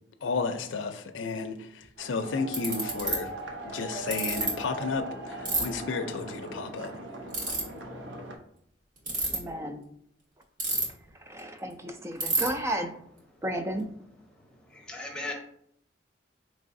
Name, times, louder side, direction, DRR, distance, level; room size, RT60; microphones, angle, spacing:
voice 1, 0.2-3.3 3.6-6.9, left 4 dB, 85° left, 0.5 m, -32 dB
Ratchet pawl, 1.8-1.9 2.5-3.1 4.1-4.5 5.4-5.6 7.3-7.6 9.0-9.4 10.6-11.1 11.4-11.5 11.7-11.8 12.2-12.5, right 3 dB, 45° right, 1.3 m, -27 dB
sound 1, 2.0-8.4, right 2 dB, 75° right, 0.7 m, -40 dB
voice 2, 9.3-9.8 11.1-13.0 13.4-13.9, right 1 dB, 15° right, 0.3 m, -33 dB
voice 3, 14.3-15.3, left 2 dB, 5° left, 0.7 m, -38 dB
4.7 x 3.1 x 2.6 m
head